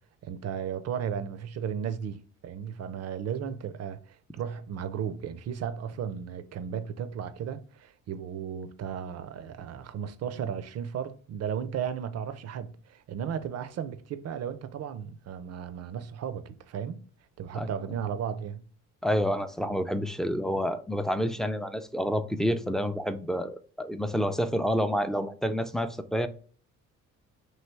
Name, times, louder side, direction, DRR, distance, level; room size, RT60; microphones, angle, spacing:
voice 1, 0.2-17.0 17.4-18.6, right 8 dB, 55° right, 0.5 m, -35 dB
voice 2, 19.0-26.3, equal, ahead, 0.3 m, -28 dB
3.1 x 2.7 x 4.5 m
cardioid pair, 90°, 30 cm